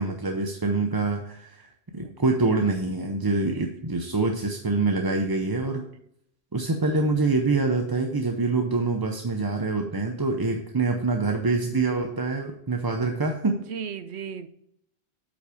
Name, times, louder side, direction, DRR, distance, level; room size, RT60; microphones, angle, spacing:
voice 1, 0.0-5.9 6.5-13.6, right 3 dB, 25° right, 4 dB, 0.6 m, -25 dB
voice 2, 3.3-3.7 13.5-14.5, right 7 dB, 80° right, 12 dB, 1.0 m, -37 dB
8.6 x 5.7 x 4.9 m, 0.73 s
omnidirectional pair, 1.1 m